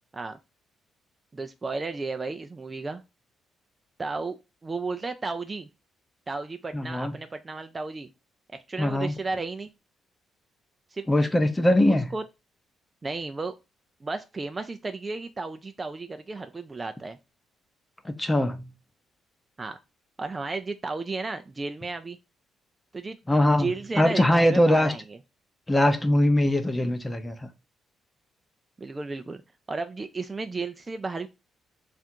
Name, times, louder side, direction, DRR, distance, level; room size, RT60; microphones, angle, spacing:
voice 1, 1.3-3.0 4.0-5.7 6.3-8.1 8.5-9.7 10.9-11.1 11.9-12.2 13.0-13.5 14.0-17.2 19.6-19.8 20.2-22.2 22.9-23.2 23.6-25.0 28.8-29.4 29.7-31.3, right 3 dB, 25° right, 0.4 m, -33 dB
voice 2, 6.7-7.1 8.8-9.1 11.1-12.1 18.0-18.7 23.3-23.7 24.0-24.9 25.7-27.5, left 1 dB, 15° left, 0.7 m, -22 dB
3.5 x 2.5 x 4.3 m
cardioid pair, 90°, 0 cm